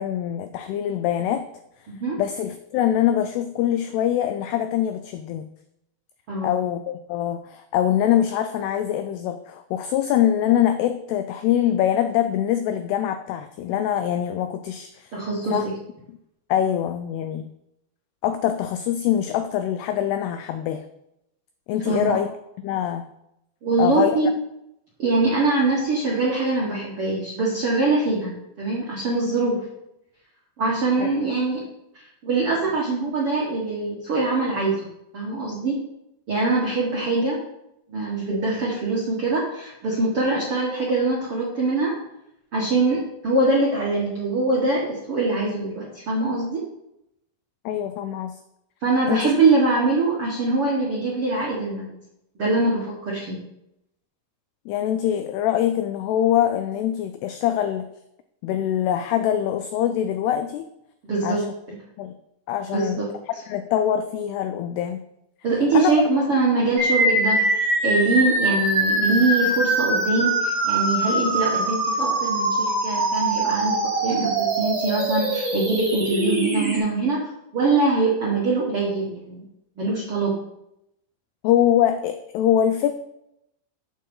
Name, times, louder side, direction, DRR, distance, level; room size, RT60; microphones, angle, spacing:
voice 1, 0.0-1.5 2.2-5.5 6.4-15.2 15.5-15.7 16.5-17.5 18.2-20.9 21.7-22.3 22.6-23.1 23.8-24.1 31.0-31.1 47.7-48.4 49.1-49.3 54.7-57.9 58.4-60.7 61.2-61.5 62.0-62.2 62.5-63.0 63.5-65.0 65.7-66.0 81.4-82.9, left 10 dB, 85° left, 9 dB, 2.3 m, -23 dB
voice 2, 1.9-2.2 6.3-6.6 15.1-15.6 21.8-22.2 23.6-24.3 25.0-29.7 30.6-31.6 31.9-35.8 36.3-37.4 37.9-42.0 42.5-46.6 48.8-51.9 52.4-53.4 61.0-61.8 62.7-63.1 65.4-79.4 79.8-80.4, right 3 dB, 65° right, -5 dB, 1.4 m, -23 dB
sound 1, 66.8-76.8, right 2 dB, 25° right, 3.9 m, -23 dB
13.0 x 6.7 x 3.8 m, 0.83 s
omnidirectional pair, 5.2 m